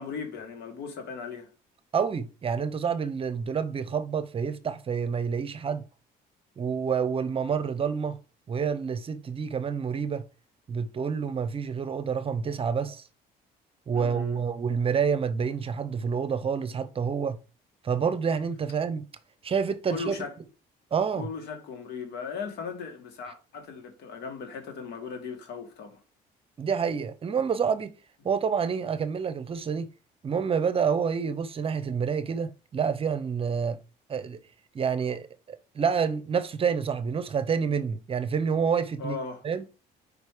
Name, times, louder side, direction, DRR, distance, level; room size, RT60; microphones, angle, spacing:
voice 1, 0.0-1.5 13.9-14.4 19.9-20.3 21.2-26.0 39.0-39.4, left 5 dB, 80° left, 1.9 m, -37 dB
voice 2, 1.9-5.8 6.6-8.2 8.5-10.2 10.7-13.0 13.9-17.4 17.8-19.0 19.4-20.1 20.9-21.3 26.6-27.9 28.2-29.9 30.2-33.8 34.1-34.4 34.7-39.2 39.4-39.7, right 6 dB, 35° right, 0.7 m, -28 dB
5.0 x 4.8 x 4.8 m
cardioid pair, 110°, 17 cm